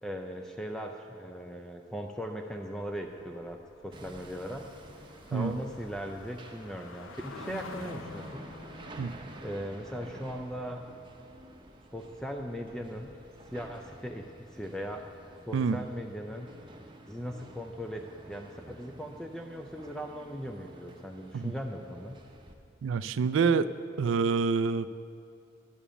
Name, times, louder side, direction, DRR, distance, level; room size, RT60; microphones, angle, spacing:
voice 1, 0.0-3.6 3.8-4.7 5.3-8.4 9.4-10.9 11.9-13.1 13.5-15.0 15.5-16.5 17.1-22.2, equal, 5° left, 3 dB, 0.4 m, -39 dB
sound 1, 2.5-9.1, left 3 dB, 90° left, 0.6 m, -48 dB
Hammer, 3.9-22.5, right 1 dB, 25° right, 0.8 m, -51 dB
voice 2, 22.8-23.7 24.0-24.9, right 5 dB, 75° right, 14 dB, 0.4 m, -27 dB
11.0 x 7.0 x 7.1 m, 2.5 s
head